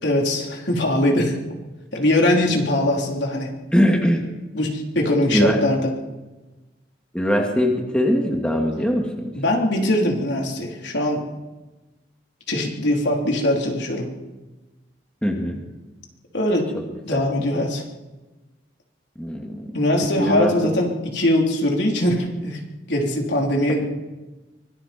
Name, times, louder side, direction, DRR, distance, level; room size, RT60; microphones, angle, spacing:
voice 1, 0.0-1.4 1.9-3.5 4.5-5.9 9.4-11.2 12.5-14.1 16.3-16.7 17.1-17.8 19.7-22.6 22.9-23.9, left 1 dB, 70° left, 0 dB, 3.9 m, -21 dB
voice 2, 3.7-4.2 5.3-5.6 7.1-9.3 15.2-15.6 16.7-16.8 17.1-17.2 19.2-19.8 20.2-20.7, equal, 5° left, 0 dB, 2.4 m, -21 dB
24.5 x 23.5 x 4.6 m, 1.2 s
head